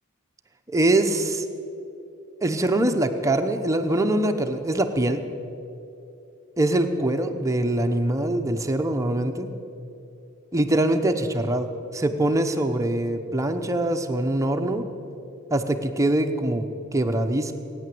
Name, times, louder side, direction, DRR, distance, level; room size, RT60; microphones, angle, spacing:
voice 1, 0.7-1.5 2.4-5.2 6.6-9.5 10.5-14.9 15.5-16.7 16.9-17.5, right 1 dB, 15° right, 6 dB, 0.8 m, -23 dB
17.5 x 9.5 x 7.7 m, 2.8 s
head